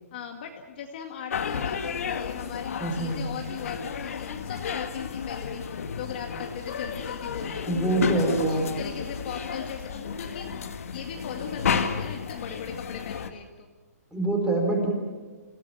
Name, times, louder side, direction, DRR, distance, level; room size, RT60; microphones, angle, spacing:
voice 1, 0.1-7.6 8.0-10.6 10.9-13.7, left 7 dB, 35° left, 3 dB, 2.1 m, -39 dB
sound 1, 1.3-13.3, left 6 dB, 60° left, 2.0 m, -32 dB
voice 2, 2.8-3.2 7.7-8.6 14.1-14.9, right 2 dB, 5° right, 0 dB, 4.8 m, -25 dB
28.0 x 17.5 x 9.2 m, 1.4 s
hypercardioid pair, 165°, 9 cm